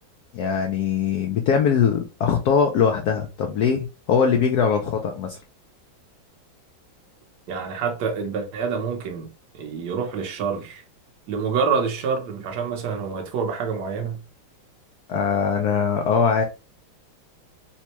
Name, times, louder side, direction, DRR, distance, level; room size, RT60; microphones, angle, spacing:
voice 1, 0.3-5.4 15.1-16.4, left 6 dB, 75° left, 0.9 m, -21 dB
voice 2, 7.5-10.8 11.3-14.2, right 5 dB, 60° right, 1.4 m, -27 dB
4.3 x 2.2 x 2.9 m
omnidirectional pair, 2.2 m